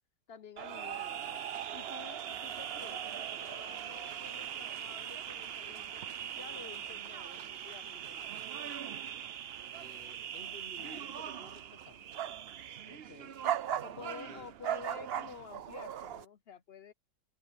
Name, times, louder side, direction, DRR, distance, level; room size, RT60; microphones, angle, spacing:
voice 1, 0.3-8.3 12.9-13.4 13.8-16.9, left 6 dB, 60° left, 0.6 m, -51 dB
sound 1, 0.6-16.2, right 10 dB, 80° right, 0.5 m, -40 dB
voice 2, 9.7-12.1 13.9-14.5, left 2 dB, 35° left, 1.5 m, -54 dB
open air
omnidirectional pair, 1.9 m